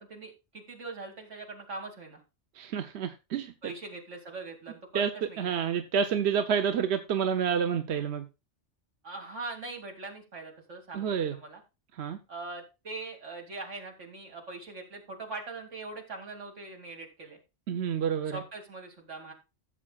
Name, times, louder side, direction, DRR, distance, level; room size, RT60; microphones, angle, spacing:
voice 1, 0.0-2.2 3.6-5.5 9.0-11.6 12.3-17.4 18.2-19.3, right 3 dB, 85° right, 2.7 m, -42 dB
voice 2, 2.5-3.5 4.9-5.1 5.4-8.2 10.9-11.4 11.9-12.2 17.7-18.4, right 7 dB, 65° right, 1.0 m, -29 dB
15.5 x 7.4 x 2.3 m
omnidirectional pair, 1.2 m